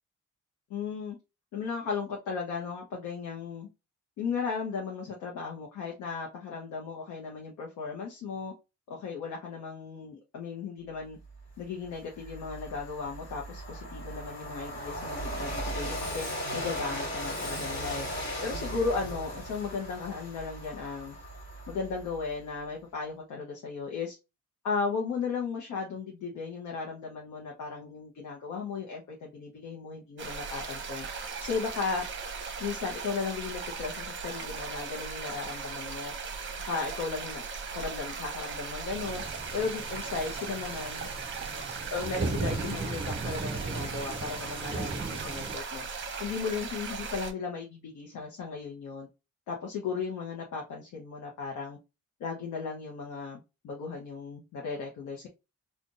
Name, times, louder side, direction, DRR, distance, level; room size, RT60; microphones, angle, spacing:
voice 1, 0.7-1.2 1.5-3.7 4.2-8.5 8.9-11.2 11.6-18.1 18.4-21.2 21.7-24.2 24.6-31.1 31.4-32.1 32.6-36.1 36.7-37.4 37.7-39.2 39.5-41.1 41.9-45.8 46.2-49.1 49.5-51.8 52.2-55.3, left 5 dB, 75° left, -1 dB, 0.9 m, -35 dB
Train, 11.4-11.5 11.9-22.3, equal, 40° left, 1.8 m, -37 dB
sound 1, 30.2-47.3, right 5 dB, 40° right, 0.8 m, -38 dB
sound 2, 38.9-45.6, right 3 dB, 20° right, 0.4 m, -37 dB
3.8 x 2.5 x 2.4 m, 0.27 s
cardioid pair, 90°, 30 cm